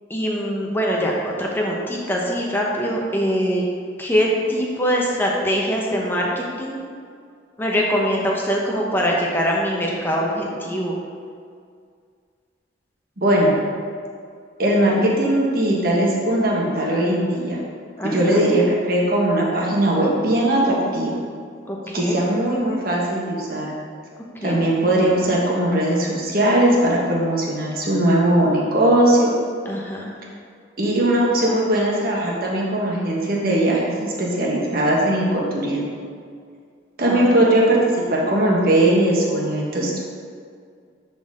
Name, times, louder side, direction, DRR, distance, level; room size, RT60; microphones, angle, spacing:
voice 1, 0.1-1.1 1.4-3.6 4.0-6.8 7.6-11.0 18.0-18.4 21.7-22.2 24.4-24.6 29.7-30.1 37.1-37.4, equal, 10° left, -2 dB, 0.9 m, -23 dB
voice 2, 13.2-13.6 14.6-17.6 18.0-21.1 21.9-23.7 24.4-29.3 30.8-35.9 37.0-40.0, right 1 dB, 50° right, -3 dB, 1.4 m, -19 dB
10.5 x 4.0 x 3.7 m, 2.2 s
head